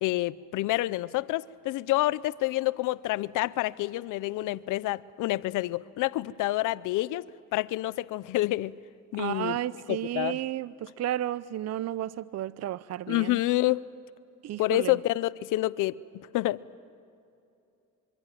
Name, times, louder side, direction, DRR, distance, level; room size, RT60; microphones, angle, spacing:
voice 1, 0.0-7.3 7.5-8.7 9.1-9.6 9.9-10.4 13.1-13.9 14.6-16.0 16.3-16.8, left 17 dB, 90° left, 0.6 m, -28 dB
voice 2, 9.2-13.4 14.4-15.0, right 12 dB, 60° right, 0.6 m, -32 dB
25.0 x 24.0 x 9.1 m
cardioid pair, 90°, 30 cm